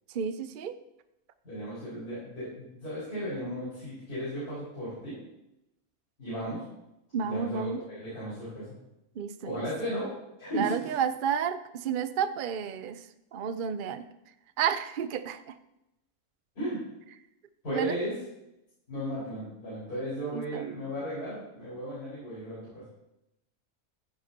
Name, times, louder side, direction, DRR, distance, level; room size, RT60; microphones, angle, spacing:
voice 1, 0.1-0.8 7.1-7.8 9.2-9.7 10.5-13.0 13.3-14.0 14.6-15.5 17.7-18.0 20.3-20.7, right 7 dB, 70° right, 11 dB, 0.5 m, -31 dB
voice 2, 1.4-5.2 6.2-6.6 7.2-8.7 9.4-10.1 10.4-10.9 16.6-16.8 17.6-18.1 18.9-22.9, equal, 80° left, -10 dB, 5.4 m, -35 dB
15.5 x 9.7 x 2.9 m, 0.88 s
omnidirectional pair, 1.6 m